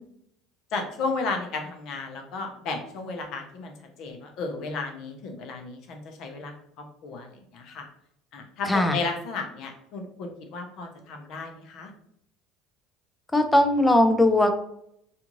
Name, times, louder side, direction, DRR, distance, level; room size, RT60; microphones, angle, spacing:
voice 1, 0.7-3.7 4.0-6.5 7.0-7.9 8.3-11.9, left 3 dB, 60° left, 4 dB, 0.7 m, -33 dB
voice 2, 13.3-14.5, left 1 dB, 10° left, 6 dB, 0.4 m, -19 dB
2.5 x 2.4 x 3.0 m, 0.71 s
supercardioid pair, 100°, 0 cm